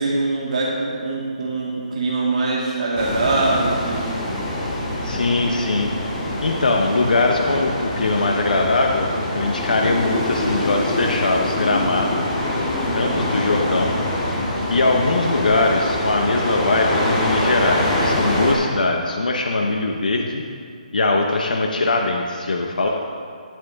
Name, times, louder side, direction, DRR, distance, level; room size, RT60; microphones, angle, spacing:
voice 1, 0.0-4.1 12.7-13.2, right 2 dB, 55° right, -4 dB, 2.4 m, -23 dB
sound 1, 3.0-18.5, left 1 dB, 20° left, 1.9 m, -24 dB
voice 2, 5.0-5.9 6.4-9.1 9.3-12.2 12.9-14.0 14.7-20.4 20.9-22.9, left 2 dB, 85° left, 1 dB, 0.9 m, -21 dB
10.5 x 10.0 x 3.6 m, 2.2 s
hypercardioid pair, 160°, 4 cm